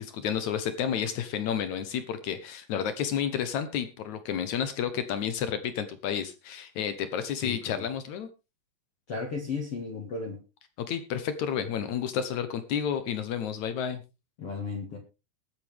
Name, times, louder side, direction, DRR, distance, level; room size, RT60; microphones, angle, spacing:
voice 1, 0.0-8.3 10.8-14.0, left 8 dB, 80° left, 10 dB, 1.6 m, -31 dB
voice 2, 7.4-7.8 9.1-10.4 14.4-15.0, left 4 dB, 45° left, 0 dB, 2.4 m, -34 dB
21.0 x 8.0 x 3.5 m, 0.29 s
omnidirectional pair, 4.9 m